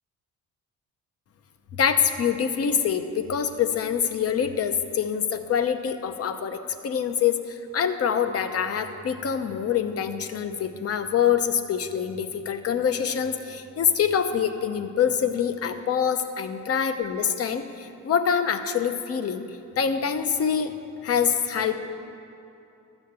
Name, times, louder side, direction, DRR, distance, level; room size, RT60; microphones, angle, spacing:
voice 1, 1.8-19.4 19.8-20.8 21.0-21.7, left 7 dB, 50° left, 9 dB, 0.8 m, -25 dB
12.5 x 7.2 x 6.8 m, 2.8 s
cardioid pair, 90°, 30 cm